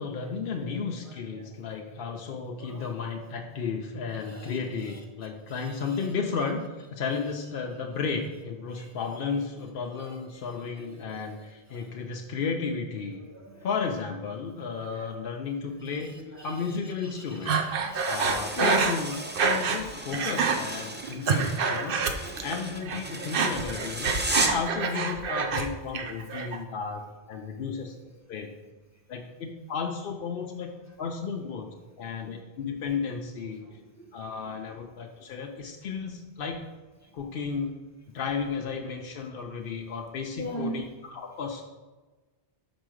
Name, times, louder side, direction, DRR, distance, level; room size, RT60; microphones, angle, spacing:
voice 1, 0.0-6.6 6.9-13.2 13.6-17.6 18.1-27.9 28.3-28.5 29.1-30.7 31.0-33.6 34.1-36.7 37.1-37.8 38.1-41.6, left 5 dB, 60° left, 2 dB, 0.7 m, -33 dB
voice 2, 13.3-13.7 14.9-15.0 16.4-16.5 17.2-18.2 18.6-18.9 21.2-21.3 33.6-34.0 40.4-40.7, equal, 20° left, 1 dB, 0.7 m, -38 dB
Breathing, 17.5-19.8 20.1-20.6 21.0-22.6 22.8-25.7 25.9-26.6, right 5 dB, 60° right, 0.8 m, -27 dB
sound 1, 17.9-24.7, right 1 dB, 15° right, 0.4 m, -35 dB
5.1 x 4.6 x 6.2 m, 1.2 s
omnidirectional pair, 1.1 m